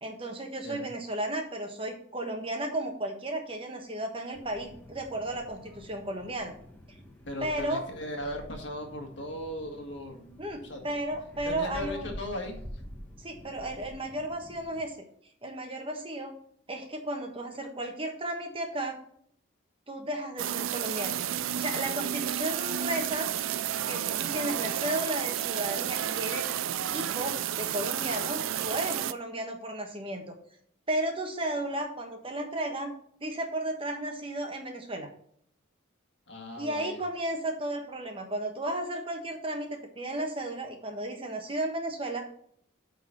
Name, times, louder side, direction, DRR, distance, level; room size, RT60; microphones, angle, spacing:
voice 1, 0.0-6.5 7.4-7.8 10.4-12.1 13.2-15.0 15.4-16.3 16.7-19.0 19.9-21.2 21.5-23.3 23.9-26.5 26.9-30.3 30.9-32.9 33.2-35.1 36.6-42.3, right 1 dB, 25° right, 3 dB, 1.3 m, -34 dB
sound 1, 4.3-14.9, equal, 10° left, 1.4 m, -47 dB
voice 2, 7.3-10.8 11.4-12.8 36.3-37.0, left 1 dB, 60° left, 2 dB, 2.0 m, -38 dB
sound 2, 20.4-29.1, right 10 dB, 85° right, 0.4 m, -31 dB
9.0 x 4.2 x 6.3 m, 0.64 s
head